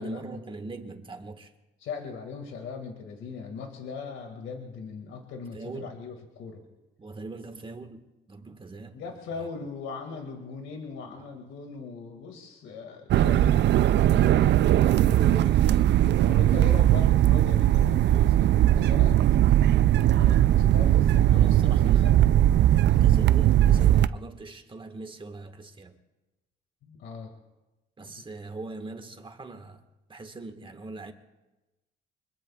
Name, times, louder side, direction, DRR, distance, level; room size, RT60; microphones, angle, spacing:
voice 1, 0.0-1.5 5.5-6.0 7.0-9.0 9.3-9.5 11.1-11.4 14.8-15.9 21.3-22.4 23.0-26.0 28.0-29.8 30.1-31.1, right 3 dB, 25° right, 1.6 m, -41 dB
voice 2, 1.8-6.6 8.9-13.7 14.0-14.6 16.1-19.2 20.1-22.2 23.0-23.3 26.8-27.3, left 5 dB, 85° left, 2.1 m, -39 dB
sound 1, 13.1-24.1, right 12 dB, 60° right, 0.4 m, -20 dB
25.0 x 21.0 x 2.4 m
cardioid pair, 90°, 20 cm